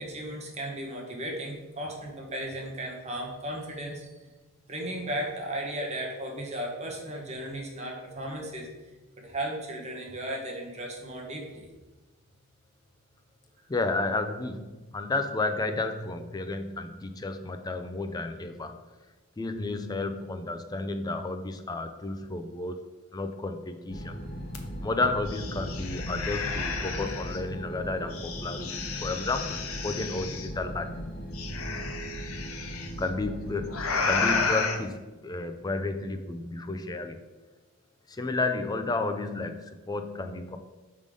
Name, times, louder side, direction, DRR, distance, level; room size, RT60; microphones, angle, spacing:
voice 1, 0.0-4.1 4.7-8.7 9.2-11.7, right 1 dB, 30° right, 0 dB, 1.0 m, -35 dB
voice 2, 13.7-18.8 19.4-22.9 23.1-24.1 24.8-28.7 29.0-29.6 29.8-30.9 33.0-37.2 38.1-40.6, left 3 dB, 20° left, 7 dB, 0.3 m, -32 dB
sound 1, 23.9-34.5, equal, 40° left, 0.8 m, -38 dB
sound 2, 24.5-24.6 25.0-27.4 28.1-30.5 31.3-32.9 33.7-34.8, left 4 dB, 75° left, 0.7 m, -32 dB
5.1 x 3.7 x 5.0 m, 1.2 s
head